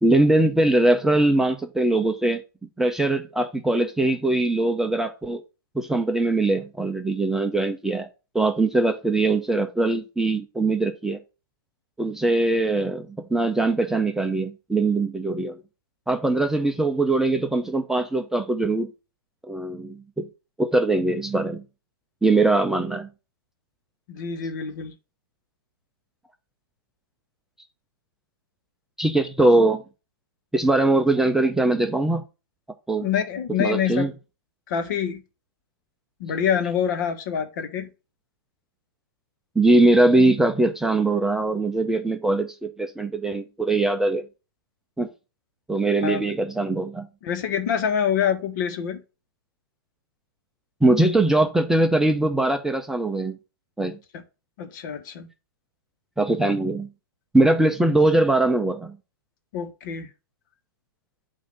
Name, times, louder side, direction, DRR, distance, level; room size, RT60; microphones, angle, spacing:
voice 1, 0.0-2.4 2.8-5.4 5.7-8.1 8.3-11.2 12.0-15.6 16.1-18.9 19.5-20.3 20.6-21.6 22.2-23.1 29.0-29.8 30.5-32.2 32.9-33.1 33.6-34.1 39.6-44.2 45.0-45.1 45.7-47.1 50.8-53.4 53.8-54.0 56.2-56.9 57.3-59.0, right 2 dB, 5° right, 0.6 m, -21 dB
voice 2, 24.1-24.9 33.0-34.1 34.7-35.2 36.2-37.9 46.0-46.2 47.2-49.0 54.1-54.2 54.6-55.3 59.5-60.1, left 8 dB, 50° left, 1.3 m, -26 dB
8.4 x 2.8 x 5.2 m
hypercardioid pair, 125°, 13 cm